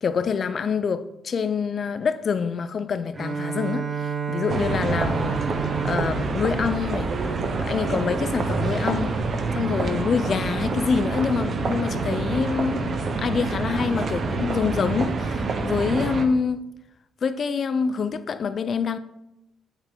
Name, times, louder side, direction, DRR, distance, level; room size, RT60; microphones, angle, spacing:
voice 1, 0.0-5.4 5.8-7.1 7.6-9.2 9.5-16.7 17.2-19.0, left 5 dB, 50° left, 0.6 m, -26 dB
Bowed string instrument, 3.1-7.9, right 5 dB, 25° right, 1.2 m, -31 dB
sound 1, 4.5-16.3, right 3 dB, 50° right, 1.0 m, -27 dB
8.1 x 7.1 x 3.8 m
cardioid pair, 75°, 0 cm